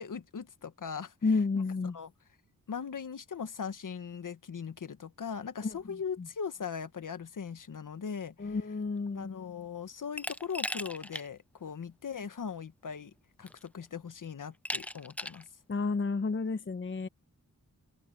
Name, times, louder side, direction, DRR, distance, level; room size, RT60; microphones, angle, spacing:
voice 1, 0.0-1.1 1.9-2.1 2.7-8.6 9.1-13.1 13.4-15.5, left 6 dB, 65° left, 1.5 m, -39 dB
voice 2, 1.2-2.0 5.6-5.8 6.2-6.3 8.4-9.3 15.7-17.1, left 4 dB, 35° left, 1.0 m, -31 dB
Glass, 10.2-11.3 11.7-11.8 12.9-13.0 13.5-13.9 14.7-15.5, left 1 dB, 5° left, 0.5 m, -37 dB
open air
wide cardioid pair, 85°, 34 cm